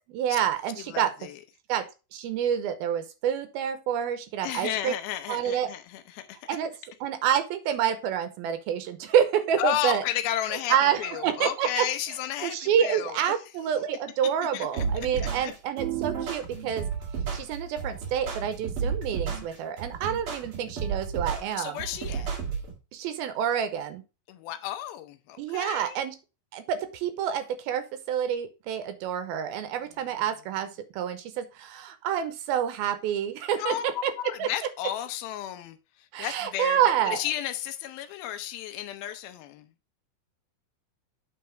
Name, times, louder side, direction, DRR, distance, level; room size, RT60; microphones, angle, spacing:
voice 1, 0.1-1.1 1.7-1.8 2.1-4.9 5.3-5.7 6.5-6.7 7.0-10.0 10.7-11.9 12.4-16.9 17.3-21.8 22.9-24.0 25.4-26.2 26.5-33.8 34.0-34.1 34.4-34.5 36.1-37.2, right 9 dB, 80° right, 10 dB, 2.5 m, -28 dB
voice 2, 0.9-1.4 4.4-6.6 9.6-13.2 14.5-14.9 15.4-15.5 21.6-22.3 24.3-26.0 33.6-35.8 36.2-39.7, left 12 dB, 80° left, 10 dB, 2.4 m, -33 dB
sound 1, 14.8-22.7, right 6 dB, 45° right, 2.0 m, -32 dB
8.6 x 4.1 x 4.5 m, 0.30 s
omnidirectional pair, 4.5 m